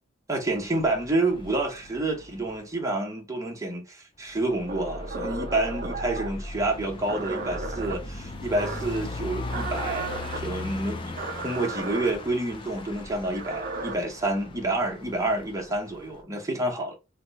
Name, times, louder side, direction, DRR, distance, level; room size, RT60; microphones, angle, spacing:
voice 1, 0.3-11.2 11.4-16.9, right 2 dB, 15° right, 0.9 m, -28 dB
sound 1, 0.6-2.8 4.4-16.2, left 2 dB, 25° left, 0.4 m, -38 dB
sound 2, 4.7-6.4 7.1-8.0 8.6-9.0 9.5-10.4 11.2-12.1 13.2-13.9, right 3 dB, 45° right, 0.5 m, -35 dB
2.8 x 2.2 x 4.0 m
head